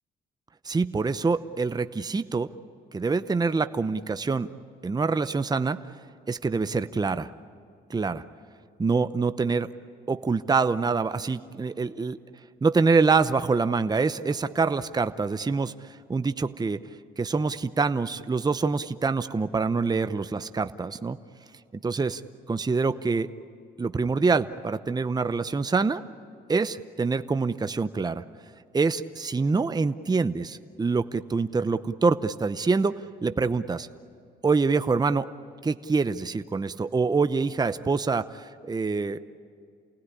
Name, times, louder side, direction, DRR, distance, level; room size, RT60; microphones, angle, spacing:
voice 1, 0.6-2.5 2.9-4.5 4.8-5.8 6.3-7.3 7.9-8.2 8.8-9.7 10.1-12.2 12.6-15.7 16.1-16.8 17.2-21.2 21.7-22.2 22.5-23.3 23.8-26.0 26.5-28.2 28.7-33.9 34.4-35.3 35.6-39.2, right 4 dB, 20° right, 11 dB, 0.8 m, -25 dB
29.0 x 19.0 x 9.9 m, 2.3 s
cardioid pair, 90°, 20 cm